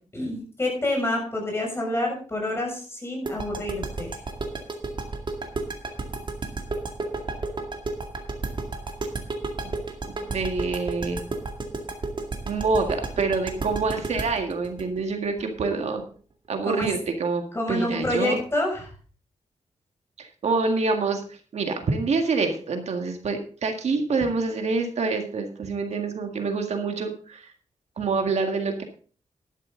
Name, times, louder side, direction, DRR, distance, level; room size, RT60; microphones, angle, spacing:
voice 1, 0.1-4.2 16.6-16.9 17.5-18.9, left 1 dB, 20° left, 0 dB, 6.6 m, -28 dB
sound 1, 3.3-16.0, right 3 dB, 40° right, 2.2 m, -31 dB
voice 2, 10.0-11.2 12.4-16.0 16.5-18.4 20.2-27.5 28.0-28.8, right 4 dB, 65° right, 5 dB, 1.9 m, -26 dB
12.0 x 11.5 x 3.9 m, 0.40 s
wide cardioid pair, 115°, 12 cm